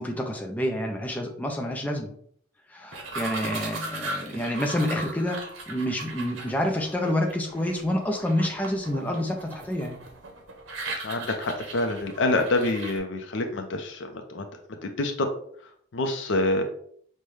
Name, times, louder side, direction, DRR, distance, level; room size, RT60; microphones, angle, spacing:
voice 1, 0.0-2.1 2.7-10.0, left 1 dB, 10° left, 2 dB, 0.4 m, -28 dB
sound 1, 2.9-13.0, right 2 dB, 85° right, 0.8 m, -38 dB
voice 2, 3.2-3.5 11.0-14.4 14.8-15.3 15.9-16.6, left 2 dB, 75° left, 5 dB, 0.5 m, -27 dB
5.4 x 2.2 x 3.2 m, 0.62 s
head